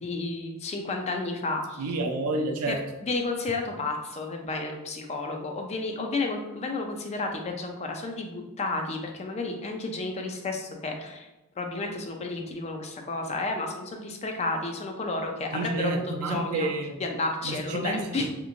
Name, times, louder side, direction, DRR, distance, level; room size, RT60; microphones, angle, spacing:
voice 1, 0.0-1.9 2.7-11.3 11.6-16.7 17.0-18.3, left 3 dB, 30° left, 3 dB, 0.4 m, -32 dB
voice 2, 1.8-2.8 15.5-16.9 17.4-18.3, right 2 dB, 90° right, 4 dB, 0.4 m, -29 dB
2.9 x 2.4 x 2.5 m, 1.0 s
head